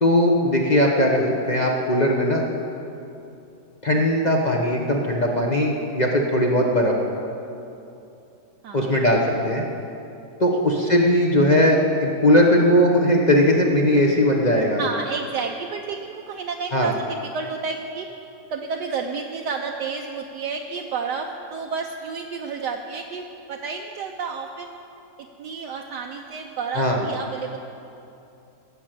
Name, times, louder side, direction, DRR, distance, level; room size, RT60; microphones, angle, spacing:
voice 1, 0.0-2.4 3.8-6.9 8.7-9.6 10.4-14.8 16.7-16.9 26.7-27.0, left 1 dB, 35° left, 0 dB, 0.7 m, -19 dB
voice 2, 8.6-9.0 14.8-18.1 18.5-24.7 25.4-27.6, right 5 dB, 70° right, 2 dB, 1.2 m, -30 dB
15.5 x 6.4 x 7.6 m, 2.8 s
omnidirectional pair, 2.1 m